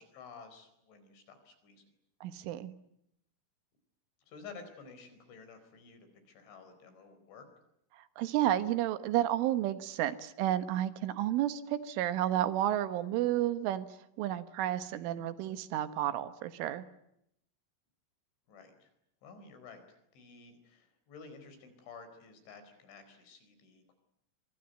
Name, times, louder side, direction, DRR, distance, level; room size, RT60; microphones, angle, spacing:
voice 1, 0.0-1.9 4.3-7.5 18.5-18.9 19.2-19.8 20.1-23.9, left 5 dB, 70° left, 9 dB, 6.9 m, -52 dB
voice 2, 2.2-2.7 8.0-13.9 14.2-16.8, right 12 dB, 80° right, 12 dB, 3.8 m, -31 dB
25.5 x 24.0 x 9.2 m, 0.78 s
omnidirectional pair, 5.7 m